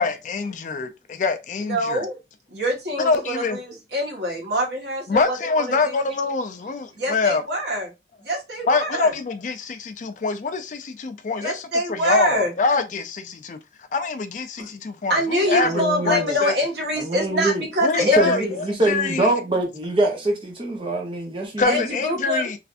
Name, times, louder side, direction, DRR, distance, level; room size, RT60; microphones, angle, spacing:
voice 1, 0.0-2.0 3.0-3.6 5.1-7.4 8.7-11.6 11.9-13.6 13.9-16.5 17.8-19.3 21.6-22.6, left 4 dB, 45° left, 0.3 m, -24 dB
voice 2, 1.6-2.2 2.5-6.0 7.0-7.9 8.2-9.1 11.4-12.5 14.6-14.7 15.1-18.5 21.6-22.5, equal, 75° right, 1.3 m, -25 dB
voice 3, 15.6-16.3 17.0-17.6 18.0-21.8, right 2 dB, 30° right, 0.8 m, -24 dB
3.2 x 2.5 x 2.4 m
head